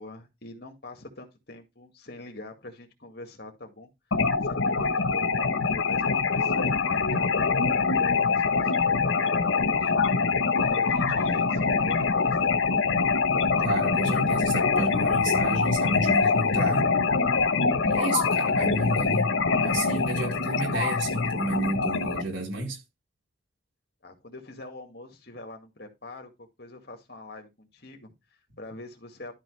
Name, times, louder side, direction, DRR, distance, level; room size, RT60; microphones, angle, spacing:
voice 1, 0.0-3.9 4.4-9.9 10.6-12.7 24.0-29.3, left 2 dB, 55° left, 2.1 m, -44 dB
sound 1, 4.1-22.2, left 4 dB, 85° left, 1.0 m, -24 dB
voice 2, 13.6-16.9 17.8-19.3 19.6-22.8, right 1 dB, 85° right, 4.1 m, -31 dB
12.5 x 4.8 x 3.3 m
head